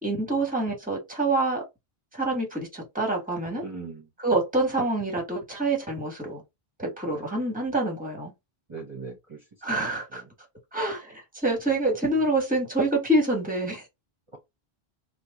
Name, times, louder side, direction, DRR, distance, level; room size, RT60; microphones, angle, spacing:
voice 1, 0.0-1.6 2.1-3.6 4.2-6.4 6.8-8.3 9.6-10.2 10.7-13.9, right 2 dB, 10° right, 1.2 m, -26 dB
voice 2, 3.6-4.0 7.0-7.3 8.7-9.4 10.1-10.2, right 4 dB, 35° right, 0.9 m, -39 dB
3.0 x 2.2 x 3.6 m
omnidirectional pair, 1.0 m